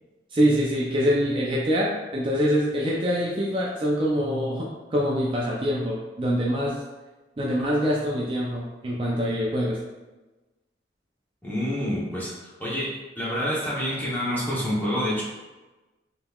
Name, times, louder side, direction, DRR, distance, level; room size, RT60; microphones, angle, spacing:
voice 1, 0.3-6.7 7.4-9.8, equal, 30° right, -4 dB, 0.4 m, -24 dB
voice 2, 11.4-12.9 13.2-15.2, equal, 10° left, -7 dB, 0.8 m, -27 dB
3.6 x 3.0 x 2.3 m, 1.1 s
head